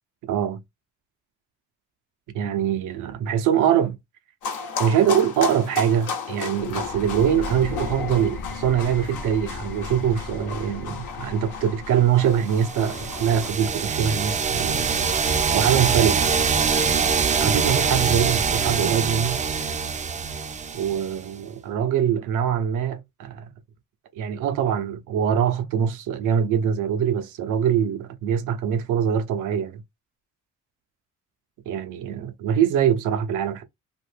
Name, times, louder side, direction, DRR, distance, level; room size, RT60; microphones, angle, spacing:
voice 1, 0.2-0.6 2.3-4.0 4.8-15.0 15.5-16.4 17.4-19.4 20.7-23.5 24.2-29.8 31.7-33.6, right 9 dB, 90° right, 0.6 m, -23 dB
sound 1, 4.4-13.5, left 5 dB, 85° left, 0.9 m, -34 dB
sound 2, 6.6-18.0, left 4 dB, 40° left, 0.5 m, -39 dB
sound 3, 12.5-21.3, right 5 dB, 25° right, 0.4 m, -24 dB
2.8 x 2.5 x 3.2 m
cardioid pair, 90°, 30 cm